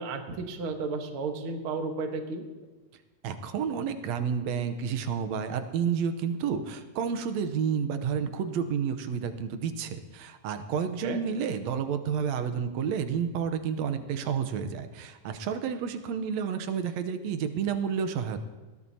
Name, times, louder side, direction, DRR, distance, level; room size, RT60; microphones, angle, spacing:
voice 1, 0.0-2.5 11.0-11.2, right 3 dB, 60° right, 4 dB, 1.4 m, -33 dB
voice 2, 3.2-18.4, right 7 dB, 75° right, 8 dB, 1.6 m, -30 dB
21.0 x 16.5 x 2.8 m, 1.2 s
omnidirectional pair, 4.1 m